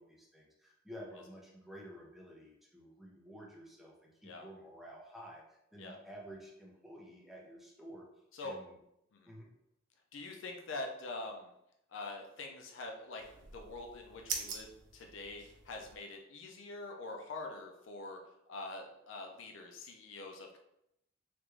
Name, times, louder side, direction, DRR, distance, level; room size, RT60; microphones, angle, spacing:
voice 1, 0.0-8.1 8.4-8.7 9.3-9.5, equal, ahead, -3 dB, 0.7 m, -51 dB
voice 2, 10.1-11.5 11.9-18.2 18.5-20.6, left 2 dB, 75° left, 2 dB, 0.5 m, -45 dB
sound 1, 13.2-16.0, right 5 dB, 70° right, 0.5 m, -44 dB
3.4 x 2.5 x 3.0 m, 0.82 s
head